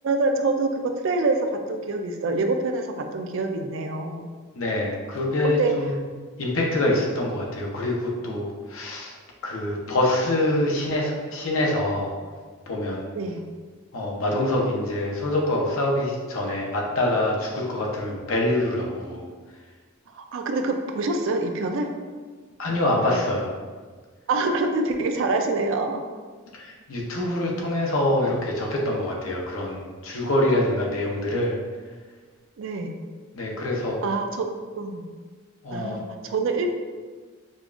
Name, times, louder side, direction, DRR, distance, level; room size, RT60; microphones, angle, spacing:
voice 1, 0.0-4.3 5.4-5.7 13.1-13.4 20.1-21.9 24.3-26.0 30.4-30.6 32.6-32.9 34.0-34.5 34.8-35.1 35.7-36.7, right 3 dB, 65° right, 5 dB, 0.4 m, -26 dB
voice 2, 4.6-5.9 6.4-9.1 9.4-12.1 12.7-13.0 13.9-19.2 22.6-23.5 26.5-31.6 33.3-34.0 35.6-36.0, left 1 dB, 70° left, -2 dB, 0.7 m, -25 dB
5.1 x 2.3 x 2.4 m, 1.5 s
head